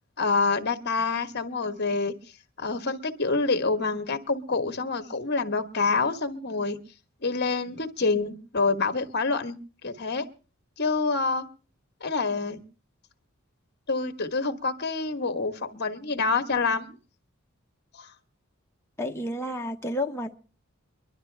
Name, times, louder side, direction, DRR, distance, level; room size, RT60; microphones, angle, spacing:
voice 1, 0.2-2.2 2.6-6.8 7.2-9.6 9.8-10.3 10.8-11.5 12.0-12.6 13.9-17.0 17.9-18.1, left 4 dB, 50° left, 1.2 m, -27 dB
voice 2, 19.0-20.4, left 1 dB, 10° left, 1.0 m, -31 dB
23.0 x 12.0 x 3.3 m
head